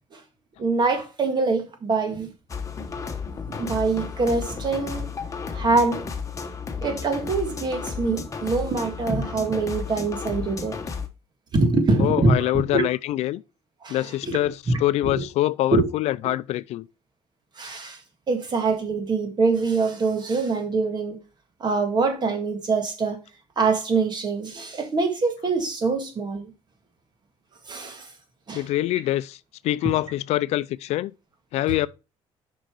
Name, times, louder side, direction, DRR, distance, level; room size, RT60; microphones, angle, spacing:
voice 1, 0.6-2.3 3.5-5.1 5.5-6.1 6.8-10.8 11.5-12.8 13.8-14.4 14.7-14.8 15.1-15.2 15.7-15.9 17.6-18.0 18.3-21.2 21.6-23.2 23.6-26.5 27.7-28.1 28.5-28.6, right 3 dB, 40° right, 1.8 m, -24 dB
sound 1, 2.5-11.1, left 5 dB, 30° left, 1.1 m, -33 dB
voice 2, 12.0-13.4 13.9-16.9 28.5-29.4 29.6-31.1 31.5-31.9, left 15 dB, 75° left, 0.4 m, -24 dB
6.4 x 5.6 x 4.7 m
cardioid pair, 105°, 11 cm